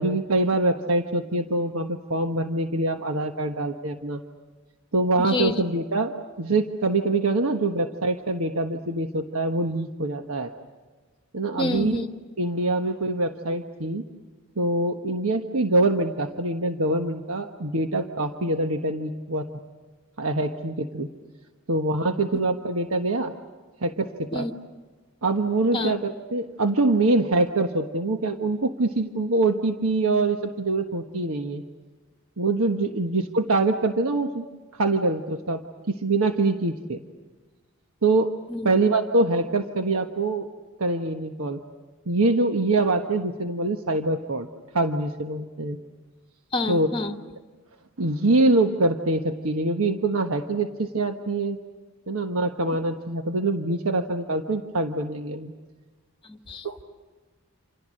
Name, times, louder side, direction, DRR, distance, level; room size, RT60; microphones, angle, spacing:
voice 1, 0.0-4.2 4.9-10.5 11.3-12.0 12.4-14.0 14.6-19.5 20.2-21.1 21.7-23.3 23.8-24.5 25.2-31.6 32.4-34.4 34.7-37.0 38.0-38.3 38.6-40.5 40.8-41.6 42.1-44.5 44.7-45.8 46.7-46.9 48.0-51.6 52.1-55.5 56.6-56.8, right 2 dB, 75° right, 5 dB, 1.3 m, -24 dB
voice 2, 5.2-5.6 11.6-12.1 24.3-24.5 25.7-25.9 38.5-38.7 46.5-47.2 56.2-56.8, left 2 dB, 25° left, 7 dB, 1.4 m, -28 dB
29.0 x 27.5 x 6.5 m, 1.3 s
head